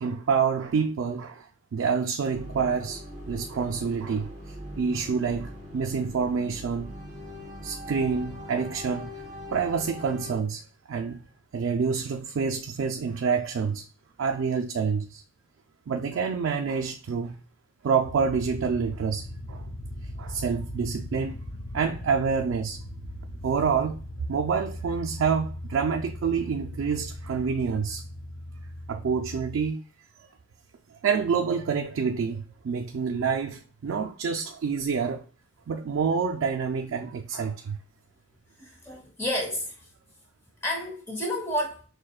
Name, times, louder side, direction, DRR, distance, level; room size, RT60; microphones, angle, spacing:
voice 1, 0.0-3.0 3.3-6.9 7.6-9.1 9.5-10.6 10.9-11.2 11.5-13.8 14.2-15.2 15.9-17.4 17.8-19.7 20.2-21.4 21.7-22.8 23.4-24.0 24.3-28.0 28.9-29.8 31.0-35.2 35.7-37.8, right 6 dB, 75° right, 0.4 m, -27 dB
sound 1, 2.3-10.4, equal, 40° right, 1.2 m, -41 dB
sound 2, 18.0-29.7, left 1 dB, 70° left, 0.6 m, -39 dB
voice 2, 38.6-39.9 40.6-41.8, left 1 dB, 15° left, 1.0 m, -31 dB
6.3 x 2.2 x 2.3 m
head